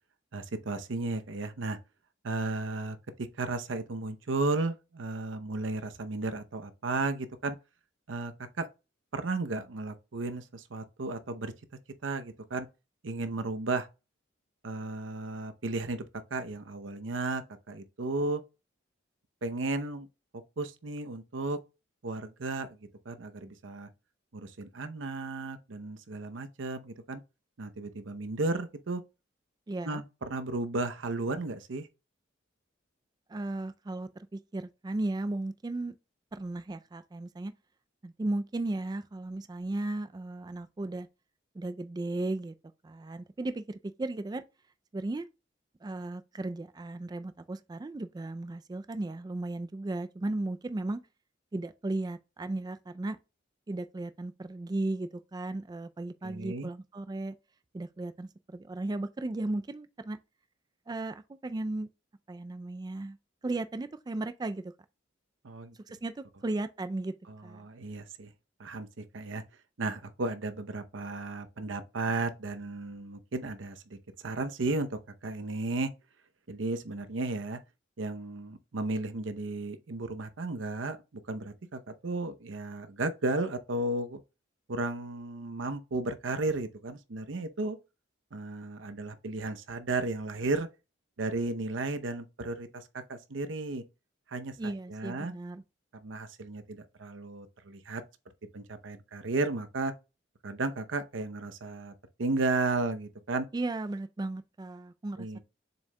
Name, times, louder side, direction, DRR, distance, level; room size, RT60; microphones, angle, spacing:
voice 1, 0.3-1.8 2.2-7.6 8.1-8.7 9.1-11.5 12.0-12.7 13.0-13.9 14.6-16.0 16.3-18.4 19.4-20.1 20.6-21.6 22.0-22.8 23.1-23.9 24.3-27.2 27.6-29.0 29.8-31.9 56.2-56.7 65.4-65.8 67.3-68.3 68.6-69.4 69.8-74.0 74.2-75.9 76.5-77.6 78.0-84.2 84.7-87.8 88.3-90.7 91.2-93.8 94.3-95.3 95.9-98.0 98.5-99.9 100.4-101.9 102.2-103.5 105.2-105.4, right 2 dB, 90° right, 0.7 m, -34 dB
voice 2, 29.7-30.0 33.3-35.9 36.3-37.5 38.0-41.1 41.5-42.5 42.8-44.4 44.9-45.3 45.8-51.0 51.5-53.2 53.7-57.3 57.7-60.2 60.9-61.9 62.3-63.2 63.4-64.7 65.9-67.1 67.4-67.6 94.6-95.6 103.5-105.4, right 2 dB, 20° right, 0.3 m, -35 dB
7.1 x 6.3 x 2.2 m
head